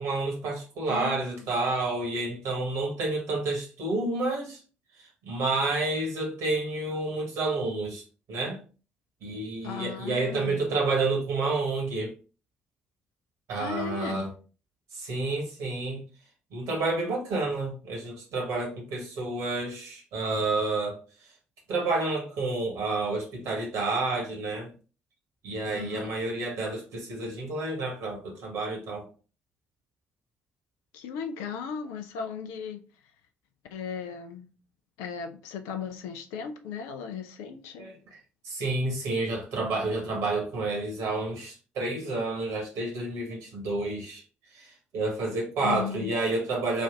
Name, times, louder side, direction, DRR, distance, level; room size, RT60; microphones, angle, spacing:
voice 1, 0.0-4.6 5.2-8.0 8.3-8.6 9.2-12.1 13.5-14.3 14.9-16.0 16.5-21.0 21.7-24.7 25.4-29.1 37.8-38.0 38.4-44.2 44.5-44.7 44.9-46.8, right 3 dB, 60° right, 1.4 m, -29 dB
voice 2, 0.9-1.4 9.6-10.6 13.6-14.3 25.7-26.2 30.9-32.8 33.7-34.5 35.0-37.9 45.6-46.1, left 7 dB, 65° left, 0.5 m, -36 dB
4.1 x 2.5 x 3.6 m
figure-of-eight pair, 45°, 6 cm